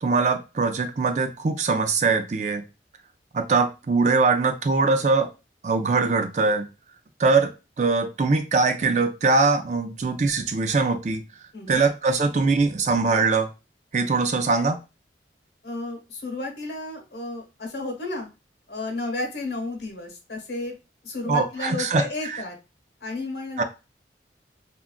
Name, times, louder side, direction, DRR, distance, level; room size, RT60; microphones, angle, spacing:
voice 1, 0.0-2.6 3.3-5.3 5.6-6.7 7.2-7.5 7.8-11.2 11.7-13.5 13.9-14.8 21.3-22.4 23.6-23.7, right 4 dB, 40° right, 7 dB, 0.4 m, -22 dB
voice 2, 15.6-18.3 18.7-20.7 21.0-22.6 23.0-23.6, left 2 dB, 70° left, 2 dB, 1.1 m, -32 dB
3.6 x 2.3 x 2.2 m, 0.28 s
head